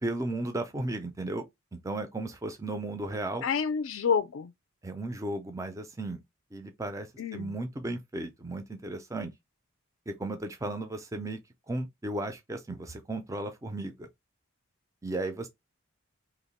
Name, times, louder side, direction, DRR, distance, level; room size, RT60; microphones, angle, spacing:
voice 1, 0.0-1.4 1.7-3.5 4.8-6.2 6.5-7.1 7.3-9.3 10.1-11.4 11.7-14.1 15.0-15.5, right 2 dB, 15° right, 0.4 m, -35 dB
voice 2, 3.4-4.5 7.2-7.5, left 6 dB, 65° left, 0.4 m, -28 dB
2.9 x 2.1 x 4.0 m
head